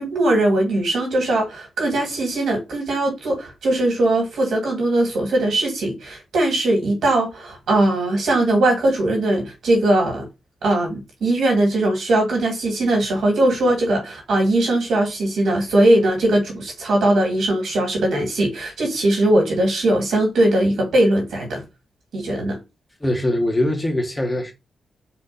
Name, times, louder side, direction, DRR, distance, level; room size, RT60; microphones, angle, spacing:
voice 1, 0.0-10.3 10.6-21.6 22.1-22.6, right 1 dB, 80° right, 2.1 m, -20 dB
voice 2, 23.0-24.5, left 1 dB, 15° left, 1.1 m, -22 dB
4.4 x 2.6 x 4.0 m
cardioid pair, 95°, 0 cm